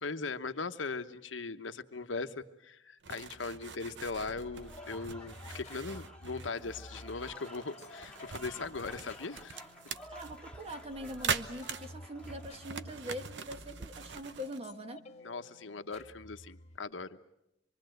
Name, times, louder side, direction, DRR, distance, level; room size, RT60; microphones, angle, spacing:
voice 1, 0.0-9.6 15.2-17.2, left 4 dB, 80° left, 9 dB, 1.1 m, -39 dB
sound 1, 3.0-14.6, right 6 dB, 70° right, 0.9 m, -42 dB
sound 2, 3.1-16.8, left 1 dB, 35° left, 1.4 m, -52 dB
Applause / Crowd, 4.4-13.3, equal, 5° left, 1.7 m, -53 dB
voice 2, 10.1-15.1, equal, 35° right, 7 dB, 1.5 m, -43 dB
26.0 x 23.5 x 7.9 m, 0.82 s
head